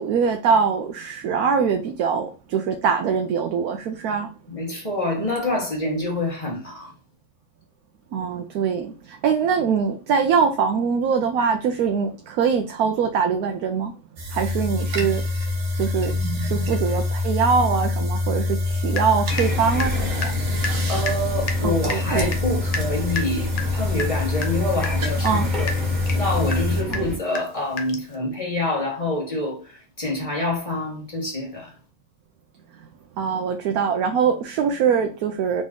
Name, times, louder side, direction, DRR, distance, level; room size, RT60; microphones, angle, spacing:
voice 1, 0.0-4.3 8.1-13.9 14.3-15.2 15.7-20.3 21.6-22.3 25.2-25.5 26.9-27.0 33.2-35.6, right 6 dB, 80° right, 1.1 m, -23 dB
voice 2, 4.5-6.9 20.7-25.7 26.1-31.7, left 1 dB, 25° left, 1.5 m, -27 dB
sound 1, 14.2-26.8, left 2 dB, 65° right, 1.4 m, -25 dB
Water tap faucet / Drip, 18.9-19.5 19.8-28.1, left 3 dB, 50° left, 0.4 m, -33 dB
sound 2, 19.3-27.2, left 2 dB, ahead, 1.6 m, -31 dB
4.0 x 3.1 x 3.7 m
omnidirectional pair, 1.6 m